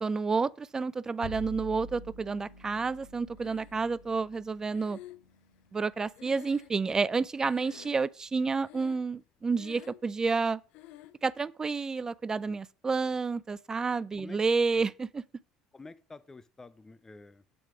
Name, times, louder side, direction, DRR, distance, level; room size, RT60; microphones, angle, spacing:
voice 1, 0.0-5.0 5.7-10.6 11.2-15.2, right 4 dB, 25° right, 0.3 m, -30 dB
Bowed string instrument, 1.2-7.7, equal, 80° left, 1.5 m, -49 dB
Breathing, 3.4-4.1 4.7-7.1 7.4-8.2 8.6-9.2 9.5-10.1 10.7-11.2, left 15 dB, 65° left, 0.4 m, -51 dB
voice 2, 15.7-17.4, left 3 dB, 20° left, 0.7 m, -49 dB
7.7 x 4.7 x 4.9 m
hypercardioid pair, 65°, 2 cm